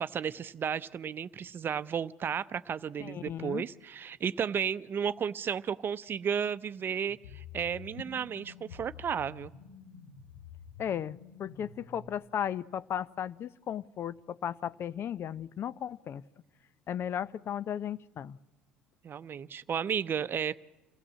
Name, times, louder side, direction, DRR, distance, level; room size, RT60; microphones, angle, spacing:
voice 1, 0.0-9.5 19.0-20.6, right 7 dB, 45° right, 15 dB, 0.7 m, -33 dB
voice 2, 3.0-3.6 10.8-16.2 16.9-18.4, left 9 dB, 50° left, 18 dB, 0.7 m, -35 dB
sound 1, 7.1-12.1, left 6 dB, 80° left, 2.1 m, -49 dB
27.5 x 16.0 x 7.5 m, 1.1 s
hypercardioid pair, 65°, 5 cm